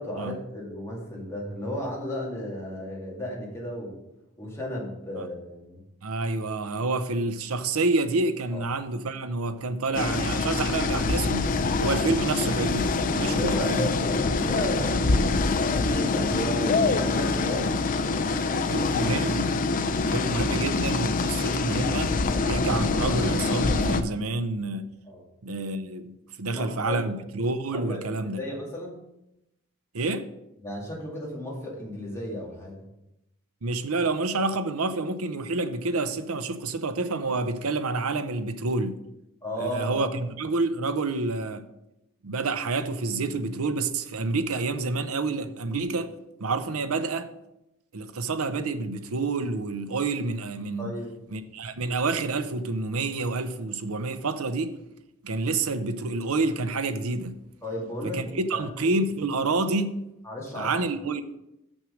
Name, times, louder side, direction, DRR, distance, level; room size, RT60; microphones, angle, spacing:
voice 1, 0.0-4.0 4.4-5.8 8.5-8.6 13.3-18.9 25.1-25.2 26.4-27.1 27.7-29.0 30.6-32.8 39.4-40.0 50.8-51.2 57.6-58.7 60.2-60.8, equal, 15° left, 2.3 m, -34 dB
voice 2, 6.0-14.1 18.7-19.5 20.1-22.1 22.5-24.9 25.4-28.4 29.9-30.3 33.6-39.0 39.6-41.6 42.2-46.1 46.4-47.3 47.9-51.0 51.3-54.7 55.2-57.4 58.0-60.0 60.5-61.2, right 3 dB, 70° right, 0.7 m, -28 dB
sound 1, 9.9-24.0, left 3 dB, 35° left, 0.5 m, -25 dB
6.4 x 6.1 x 6.3 m
head